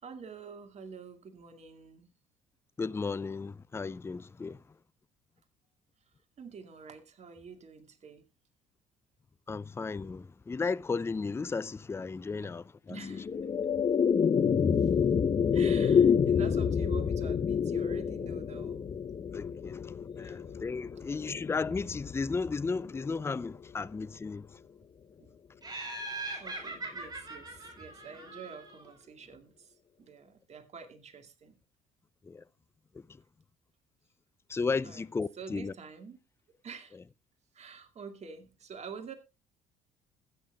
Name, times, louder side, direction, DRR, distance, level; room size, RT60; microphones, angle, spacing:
voice 1, 0.0-2.1 6.4-8.2 12.9-13.3 13.7-13.8 14.8-14.9 15.5-18.9 20.2-20.4 25.2-25.3 25.8-31.6 34.8-35.0 35.4-36.2 36.5-37.0 37.5-39.1, right 5 dB, 40° right, 2.2 m, -47 dB
voice 2, 2.8-4.8 9.5-13.2 19.3-24.6 32.2-32.5 32.9-33.2 34.5-35.7 36.9-37.0, left 4 dB, 15° left, 0.5 m, -35 dB
sound 1, 12.9-23.4, left 7 dB, 30° left, 0.8 m, -28 dB
Laughter, 25.6-28.9, right 2 dB, 25° right, 4.5 m, -41 dB
20.5 x 8.7 x 2.3 m
hypercardioid pair, 55°, 17 cm